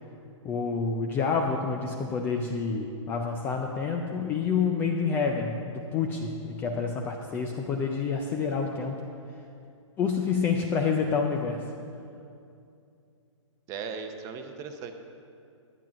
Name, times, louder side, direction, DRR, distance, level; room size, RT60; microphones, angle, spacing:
voice 1, 0.4-9.0 10.0-11.7, left 5 dB, 10° left, 2 dB, 0.4 m, -28 dB
voice 2, 13.7-14.9, right 5 dB, 20° right, 6 dB, 0.7 m, -37 dB
11.0 x 8.9 x 6.0 m, 2.5 s
hypercardioid pair, 155°, 17 cm